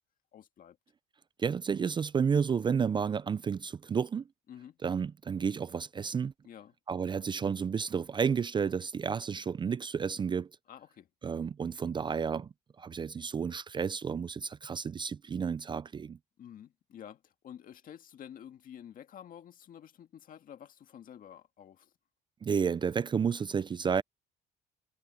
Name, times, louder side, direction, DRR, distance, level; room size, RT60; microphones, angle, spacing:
voice 1, 0.3-0.8 4.5-4.8 6.4-6.7 10.7-11.1 16.4-21.9, left 9 dB, 55° left, 1.9 m, -50 dB
voice 2, 1.4-4.2 4.8-6.3 6.9-10.5 11.2-12.5 12.8-16.2 22.4-24.0, right 6 dB, 25° right, 0.4 m, -31 dB
cardioid pair, 110°, 17 cm